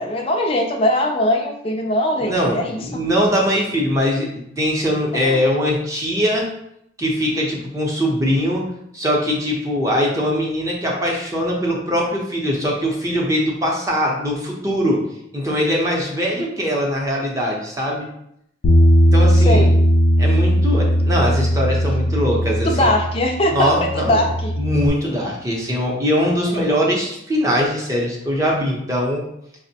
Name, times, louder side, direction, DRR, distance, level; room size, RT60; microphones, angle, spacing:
voice 1, 0.0-3.0 5.2-5.4 19.4-19.8 22.6-24.6, left 1 dB, 30° left, 1 dB, 0.4 m, -21 dB
voice 2, 2.2-6.5 7.0-8.6 8.9-15.1 15.3-18.1 19.1-19.7 20.2-22.9 23.5-24.2 24.6-29.3, equal, 15° right, -2 dB, 0.6 m, -21 dB
Bass guitar, 18.6-24.9, equal, 85° left, 0.5 m, -17 dB
5.0 x 2.1 x 2.7 m, 0.75 s
head